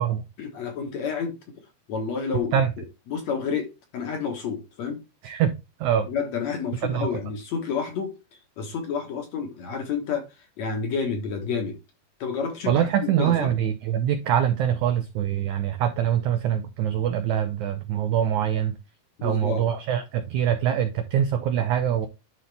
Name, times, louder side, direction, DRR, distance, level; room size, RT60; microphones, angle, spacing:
voice 1, 0.4-1.4 1.9-5.0 6.1-8.2 8.6-11.8 12.2-13.5 19.2-19.7, left 6 dB, 60° left, 2.0 m, -30 dB
voice 2, 5.2-5.6 5.8-6.1 6.8-7.1 12.7-18.8 19.2-22.1, right 9 dB, 90° right, 1.6 m, -24 dB
11.5 x 3.9 x 3.3 m
omnidirectional pair, 4.4 m